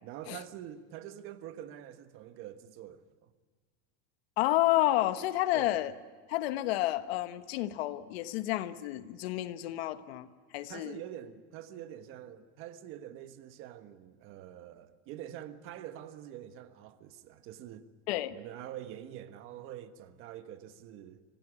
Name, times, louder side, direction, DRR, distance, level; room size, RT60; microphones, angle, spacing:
voice 1, 0.0-3.3 5.5-5.8 10.7-17.9 18.3-21.2, right 11 dB, 40° right, 1.3 m, -46 dB
voice 2, 4.4-5.9 6.3-10.3 10.5-11.0 18.1-18.4, left 15 dB, 70° left, 1.3 m, -30 dB
25.5 x 17.0 x 9.9 m
supercardioid pair, 160°, 32 cm